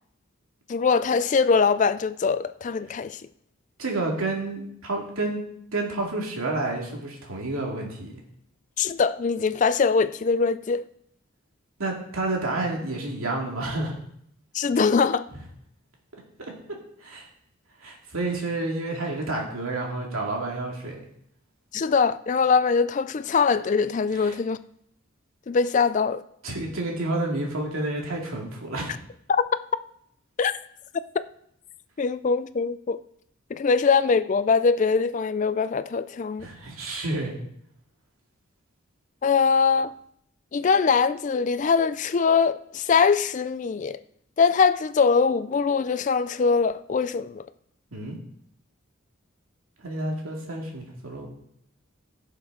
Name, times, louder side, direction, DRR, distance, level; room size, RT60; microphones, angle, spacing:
voice 1, 0.7-3.2 8.8-10.8 14.5-15.2 21.7-24.6 25.5-26.2 29.3-29.4 30.4-30.5 32.0-33.0 33.5-36.5 39.2-39.9 40.5-44.0 44.4-47.4, left 5 dB, 35° left, 0.3 m, -22 dB
voice 2, 3.8-5.4 5.7-8.1 11.8-13.9 17.0-17.3 17.8-21.0 24.1-24.4 26.4-28.9 36.4-37.3 47.9-48.2 49.8-51.3, right 2 dB, 80° right, 2.4 m, -30 dB
15.0 x 6.5 x 3.8 m
head